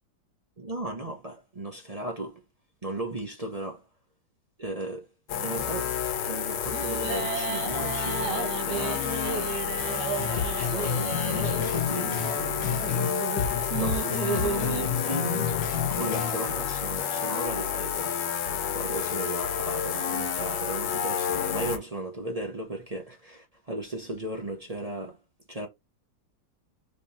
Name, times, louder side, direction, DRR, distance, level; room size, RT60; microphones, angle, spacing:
voice 1, 0.6-2.4 2.8-3.8 4.6-5.1 5.4-5.9 6.2-9.5 10.7-12.3 13.7-15.5 15.9-18.2 18.7-25.2 25.5-25.7, right 2 dB, 30° right, 0.8 m, -36 dB
sound 1, 5.3-21.8, left 8 dB, 75° left, 1.4 m, -30 dB
sound 2, 6.7-14.8, right 7 dB, 70° right, 1.1 m, -34 dB
sound 3, 10.2-13.1 13.4-16.6, left 7 dB, 45° left, 1.2 m, -31 dB
3.7 x 3.4 x 4.2 m
omnidirectional pair, 2.0 m